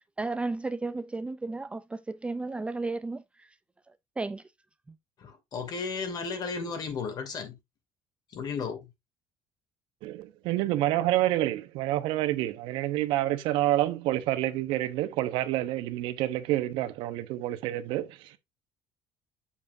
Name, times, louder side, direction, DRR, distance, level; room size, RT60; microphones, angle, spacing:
voice 1, 0.2-3.2 4.2-4.4, right 3 dB, 15° right, 0.4 m, -33 dB
voice 2, 5.2-7.6 8.3-8.9, left 5 dB, 50° left, 2.6 m, -34 dB
voice 3, 10.0-18.4, right 15 dB, 80° right, 0.9 m, -28 dB
7.3 x 7.0 x 2.6 m
cardioid pair, 110°, 8 cm